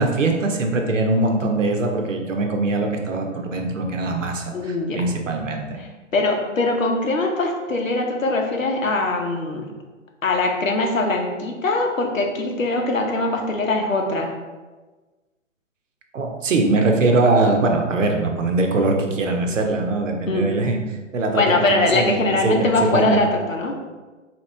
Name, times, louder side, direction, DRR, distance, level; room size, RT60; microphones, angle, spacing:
voice 1, 0.0-5.8 16.1-20.8 21.1-22.2 22.4-23.2, right 2 dB, 75° right, 3 dB, 0.9 m, -21 dB
voice 2, 4.5-5.0 5.8-9.7 10.2-14.3 20.3-20.5 21.3-23.7, left 2 dB, 85° left, 2 dB, 0.9 m, -22 dB
4.1 x 3.0 x 3.2 m, 1.3 s
figure-of-eight pair, 140°, 38 cm